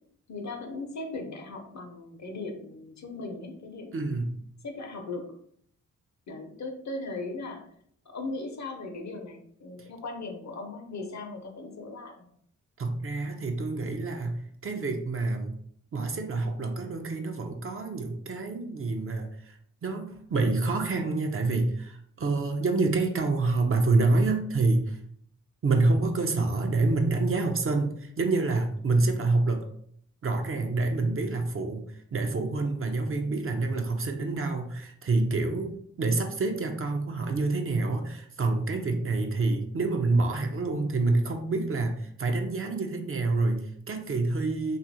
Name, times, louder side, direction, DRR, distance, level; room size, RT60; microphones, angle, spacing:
voice 1, 0.3-4.2 4.6-5.3 6.3-7.6 8.1-12.3, left 3 dB, 55° left, 4 dB, 0.7 m, -38 dB
voice 2, 3.9-4.4 12.8-15.5 15.9-25.0 25.6-29.7 30.2-31.8 32.1-44.8, right 3 dB, 40° right, 5 dB, 0.5 m, -27 dB
2.7 x 2.5 x 2.6 m, 0.65 s
supercardioid pair, 45°, 34 cm